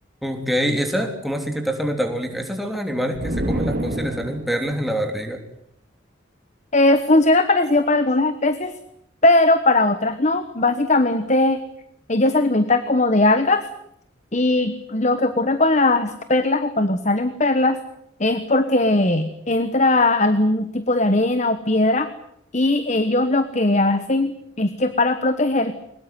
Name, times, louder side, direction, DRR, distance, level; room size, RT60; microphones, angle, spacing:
voice 1, 0.2-5.4, equal, ahead, 4 dB, 3.3 m, -25 dB
sound 1, 3.1-4.8, right 1 dB, 55° right, 2.4 m, -27 dB
voice 2, 6.7-8.7 9.2-11.6 12.1-13.7 14.3-17.8 18.2-22.1 22.5-25.7, left 2 dB, 35° left, 11 dB, 1.2 m, -19 dB
22.5 x 20.5 x 9.2 m, 0.76 s
head